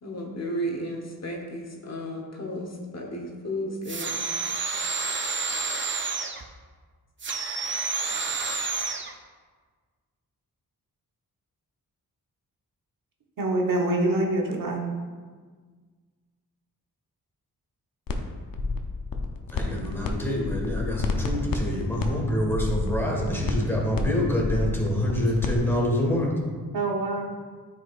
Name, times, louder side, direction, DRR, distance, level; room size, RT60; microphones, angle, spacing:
voice 1, 0.0-4.2, equal, 45° left, 0 dB, 1.2 m, -33 dB
sound 1, 3.8-6.4 7.2-9.1, right 4 dB, 30° right, 0.6 m, -29 dB
voice 2, 13.4-14.8 26.7-27.3, right 2 dB, 65° right, -1 dB, 1.1 m, -25 dB
sound 2, 18.1-18.2 18.5-20.1 20.4-25.6, left 4 dB, 65° left, 0.7 m, -29 dB
voice 3, 19.5-26.3, left 1 dB, 5° left, -2 dB, 1.7 m, -26 dB
8.9 x 5.1 x 2.5 m, 1.5 s
cardioid pair, 75°, 36 cm